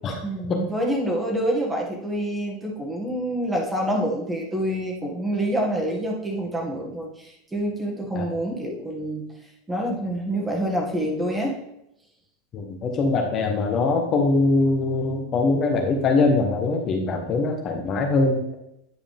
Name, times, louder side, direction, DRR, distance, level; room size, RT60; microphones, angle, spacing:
voice 1, 0.2-9.2 9.7-11.6, right 1 dB, 15° right, 0 dB, 2.1 m, -27 dB
voice 2, 12.5-18.4, left 3 dB, 35° left, 2 dB, 1.2 m, -22 dB
9.6 x 5.0 x 3.5 m, 0.81 s
supercardioid pair, 120°, 0 cm